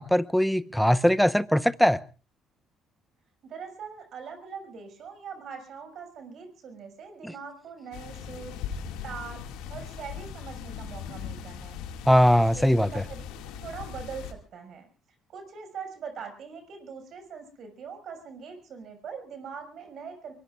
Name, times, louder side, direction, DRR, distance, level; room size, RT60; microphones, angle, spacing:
voice 1, 0.0-2.0 7.2-7.3 12.1-12.9, equal, ahead, 0.9 m, -21 dB
voice 2, 3.4-8.6 9.0-11.8 12.1-14.9 15.3-20.3, right 6 dB, 60° right, 5.9 m, -42 dB
sound 1, 7.9-14.3, left 7 dB, 80° left, 2.1 m, -39 dB
24.0 x 23.0 x 2.5 m
hypercardioid pair, 60°, 0 cm